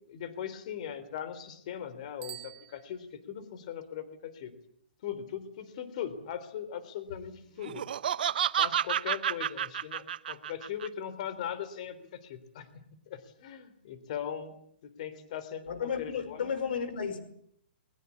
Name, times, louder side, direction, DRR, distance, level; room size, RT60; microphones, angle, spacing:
voice 1, 0.1-4.5 5.0-7.8 8.6-14.5 14.8-16.5, left 9 dB, 40° left, 14 dB, 3.7 m, -39 dB
Bicycle bell, 2.2-3.5, right 16 dB, 20° right, 1.3 m, -48 dB
Laughter, 7.6-10.9, right 9 dB, 55° right, 0.9 m, -30 dB
voice 2, 15.7-17.2, left 6 dB, 60° left, 12 dB, 5.4 m, -33 dB
22.0 x 22.0 x 8.6 m, 0.68 s
hypercardioid pair, 165°, 6 cm